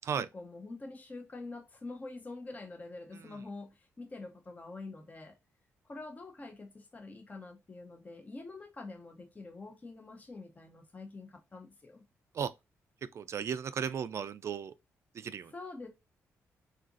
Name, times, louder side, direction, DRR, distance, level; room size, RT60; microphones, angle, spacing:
voice 1, 0.0-5.4 5.8-12.0 15.5-15.9, left 3 dB, 30° left, 0.7 m, -46 dB
voice 2, 13.1-14.7 15.2-15.5, right 7 dB, 55° right, 0.3 m, -35 dB
3.8 x 2.4 x 2.4 m
cardioid pair, 80°, 6 cm